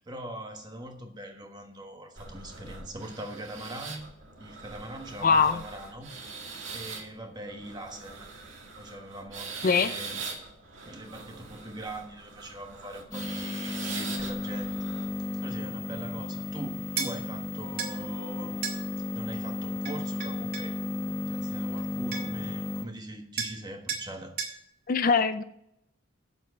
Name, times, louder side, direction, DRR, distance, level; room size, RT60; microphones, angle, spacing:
voice 1, 0.0-4.1 4.4-8.3 8.8-10.2 10.8-14.7 15.0-18.7 19.0-20.8 21.3-24.3, right 1 dB, 20° right, 4 dB, 1.3 m, -42 dB
sound 1, 2.2-15.1, right 4 dB, 65° right, 2.1 m, -42 dB
voice 2, 5.2-5.6 9.6-9.9 24.9-25.4, left 5 dB, 40° left, 11 dB, 0.4 m, -22 dB
sound 2, 13.1-22.8, left 2 dB, 15° left, 0.9 m, -34 dB
sound 3, 17.0-17.1 17.8-18.0 18.6-18.8 19.9-20.7 21.8-21.9 22.1-22.5 23.4-23.6 23.9-24.1 24.4-24.6, right 6 dB, 45° right, 2.0 m, -33 dB
8.1 x 7.5 x 6.3 m, 0.75 s
head